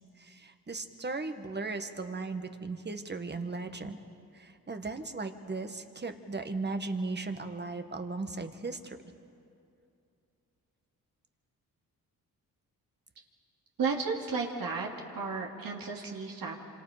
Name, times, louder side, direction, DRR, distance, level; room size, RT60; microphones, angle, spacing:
voice 1, 0.2-4.0 4.3-9.0, right 3 dB, 30° right, 7 dB, 1.7 m, -37 dB
voice 2, 13.8-14.9 15.1-16.5, right 4 dB, 65° right, -1 dB, 2.6 m, -33 dB
26.5 x 26.5 x 5.1 m, 2.6 s
cardioid pair, 70°, 37 cm